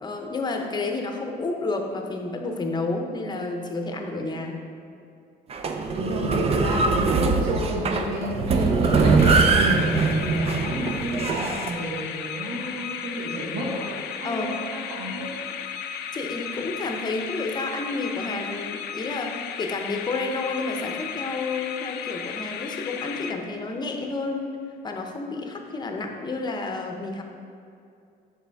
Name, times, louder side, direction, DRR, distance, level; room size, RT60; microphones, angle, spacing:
voice 1, 0.0-4.6 7.8-8.2 8.5-9.2 14.2-14.6 16.1-24.6 24.8-27.2, left 3 dB, 25° left, 3 dB, 0.7 m, -30 dB
sound 1, 5.5-11.7, right 4 dB, 35° right, 0.5 m, -22 dB
voice 2, 5.9-10.0 10.4-15.4, right 1 dB, 85° right, -3 dB, 1.5 m, -31 dB
sound 2, 9.2-23.8, left 8 dB, 75° left, 0.4 m, -35 dB
6.6 x 5.4 x 3.5 m, 2.4 s
cardioid pair, 110°, 17 cm